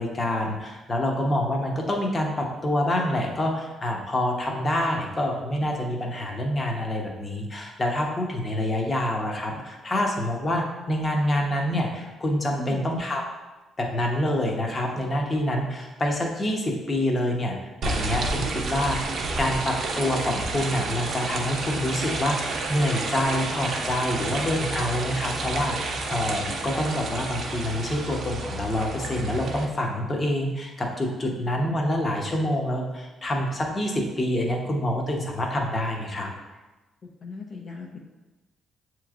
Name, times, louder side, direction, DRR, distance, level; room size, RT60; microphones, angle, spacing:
voice 1, 0.0-13.2 13.8-17.6 17.8-36.3, left 1 dB, 30° left, 0 dB, 0.8 m, -27 dB
voice 2, 12.5-12.9 37.0-38.0, left 3 dB, 50° left, 0 dB, 0.5 m, -38 dB
sound 1, 17.8-29.6, right 3 dB, 65° right, 0.7 m, -30 dB
6.7 x 3.1 x 2.4 m, 1.1 s
cardioid pair, 90°, 0 cm